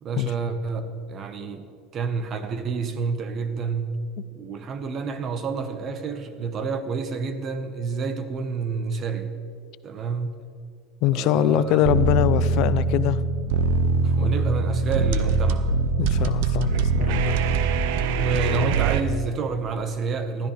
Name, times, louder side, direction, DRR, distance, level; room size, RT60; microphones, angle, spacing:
voice 1, 0.0-1.6 1.9-4.0 4.3-9.4 9.8-10.3 11.1-11.8 14.0-15.7 18.1-20.5, right 5 dB, 45° right, 9 dB, 1.4 m, -29 dB
voice 2, 11.0-13.2 16.0-17.4, left 12 dB, 65° left, 16 dB, 0.5 m, -23 dB
sound 1, 11.9-19.0, right 4 dB, 75° right, 0.8 m, -22 dB
19.5 x 13.0 x 3.5 m, 2.2 s
supercardioid pair, 95°, 0 cm